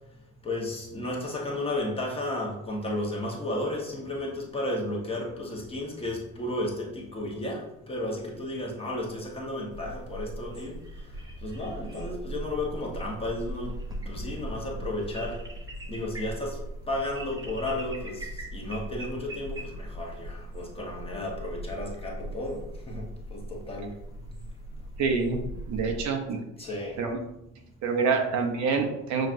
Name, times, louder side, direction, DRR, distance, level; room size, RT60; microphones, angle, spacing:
voice 1, 0.4-13.8 14.0-15.5 15.9-16.6 16.9-23.9 26.6-27.0, left 1 dB, 15° left, -2 dB, 0.9 m, -33 dB
sound 1, 9.7-26.0, right 1 dB, 10° right, 0.6 m, -39 dB
voice 2, 25.0-25.4 25.7-26.4 27.0-27.2 27.8-29.3, right 5 dB, 55° right, 3 dB, 0.7 m, -26 dB
6.0 x 2.4 x 2.5 m, 0.87 s
cardioid pair, 120°, 34 cm